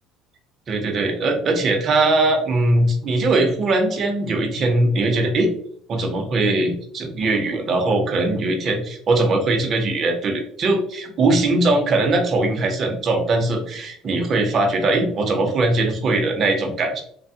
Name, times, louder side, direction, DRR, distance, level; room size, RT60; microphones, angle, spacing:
voice 1, 0.7-5.6 5.9-17.0, right 2 dB, 35° right, 3 dB, 0.6 m, -20 dB
3.2 x 2.0 x 2.7 m, 0.64 s
cardioid pair, 135°, 0 cm